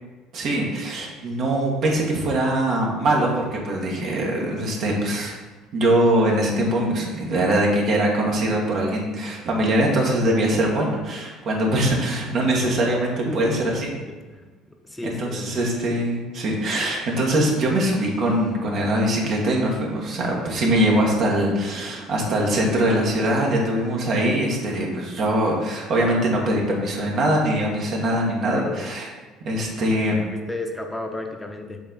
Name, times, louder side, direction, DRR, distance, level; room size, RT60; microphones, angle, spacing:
voice 1, 0.3-5.4 5.7-13.9 15.0-29.0 29.4-30.2, right 1 dB, 55° right, -2 dB, 1.4 m, -22 dB
voice 2, 13.3-13.6 14.3-14.5 14.8-15.6 28.5-28.9 30.3-31.8, left 2 dB, 10° left, 3 dB, 0.9 m, -32 dB
7.2 x 3.4 x 3.9 m, 1.2 s
hypercardioid pair, 65°, 0 cm